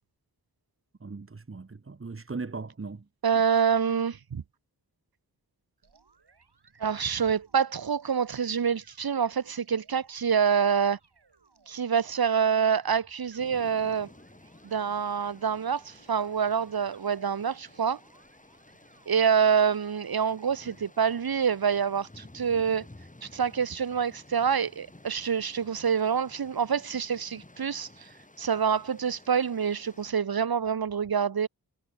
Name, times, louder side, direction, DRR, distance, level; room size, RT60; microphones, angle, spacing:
voice 1, 1.0-3.1, right 4 dB, 35° right, 1.0 m, -38 dB
voice 2, 3.2-4.4 6.8-11.0 11.7-14.1 14.6-18.0 19.1-22.9 23.2-27.9 28.4-31.5, right 7 dB, 65° right, 0.9 m, -26 dB
sound 1, 5.8-20.8, right 4 dB, 85° right, 4.7 m, -62 dB
sound 2, 13.4-30.1, left 1 dB, 20° left, 2.5 m, -54 dB
wide cardioid pair, 75°, 39 cm